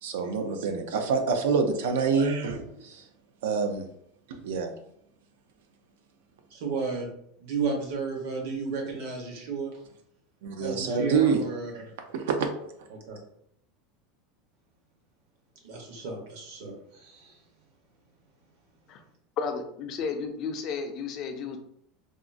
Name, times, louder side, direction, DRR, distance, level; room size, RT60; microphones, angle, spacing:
voice 1, 0.0-3.0 3.4-3.8 4.3-4.7 10.4-11.4 12.1-12.5, right 5 dB, 85° right, 6 dB, 0.5 m, -26 dB
voice 2, 6.5-7.1 7.4-9.7 10.6-11.7 13.1-13.2 15.6-16.7 17.0-17.3, right 4 dB, 65° right, 1 dB, 1.0 m, -33 dB
voice 3, 19.4-21.6, left 5 dB, 35° left, 5 dB, 0.3 m, -33 dB
3.6 x 2.0 x 2.5 m, 0.71 s
supercardioid pair, 165°, 0 cm